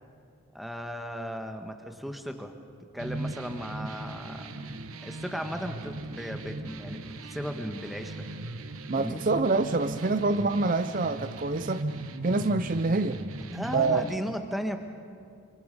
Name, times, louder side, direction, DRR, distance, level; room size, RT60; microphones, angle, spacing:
voice 1, 0.5-2.5 2.9-4.7 5.0-8.2 8.9-9.3 13.5-14.8, equal, ahead, 5 dB, 1.3 m, -36 dB
sound 1, 3.0-14.1, right 2 dB, 80° right, 1.2 m, -38 dB
voice 2, 8.9-11.9 12.2-13.2 13.7-14.0, right 3 dB, 40° right, 10 dB, 0.5 m, -26 dB
26.0 x 26.0 x 5.3 m, 2.4 s
head